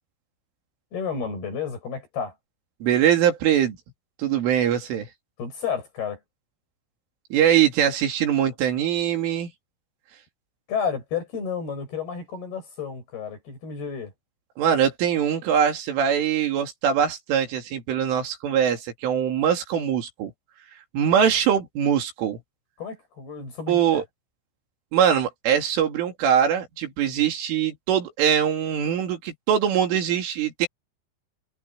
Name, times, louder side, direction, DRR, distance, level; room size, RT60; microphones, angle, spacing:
voice 1, 0.9-2.3 5.4-6.2 10.7-14.1 21.2-21.3 22.8-24.0, left 6 dB, 55° left, 9.6 m, -31 dB
voice 2, 2.8-3.8 4.2-5.1 7.3-9.5 14.6-20.3 20.9-22.4 23.7-24.0 24.9-30.7, right 9 dB, 85° right, 5.6 m, -22 dB
omnidirectional pair, 5.5 m